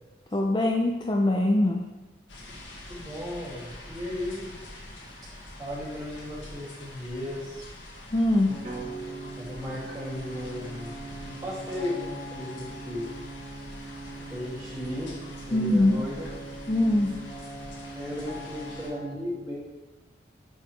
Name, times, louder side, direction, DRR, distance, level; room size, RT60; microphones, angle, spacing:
voice 1, 0.3-1.8 8.1-8.5 15.5-16.0 16.7-17.2, left 1 dB, 25° left, 1 dB, 0.4 m, -22 dB
sound 1, 2.3-18.9, left 1 dB, 90° left, 1.6 m, -45 dB
voice 2, 2.9-4.5 5.6-7.6 9.4-10.9 11.2-13.1 14.3-15.1 15.5-16.3 18.0-19.7, left 1 dB, 20° right, -8 dB, 2.4 m, -35 dB
sound 2, 8.5-19.1, right 2 dB, 55° left, 1.6 m, -42 dB
sound 3, 8.6-12.7, right 3 dB, 45° right, 1.4 m, -45 dB
9.5 x 4.8 x 3.3 m, 1.1 s
head